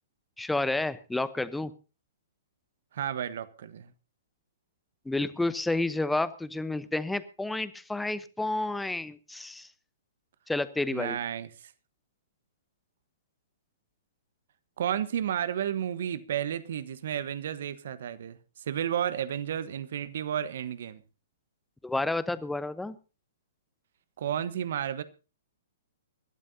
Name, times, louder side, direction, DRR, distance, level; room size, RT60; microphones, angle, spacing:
voice 1, 0.4-1.7 5.0-9.7 10.5-11.2 21.8-23.0, left 2 dB, 5° left, 0.9 m, -30 dB
voice 2, 2.9-3.9 10.9-11.7 14.8-21.0 24.2-25.0, right 9 dB, 60° right, 1.2 m, -32 dB
25.0 x 12.5 x 2.8 m
figure-of-eight pair, 120°, 0 cm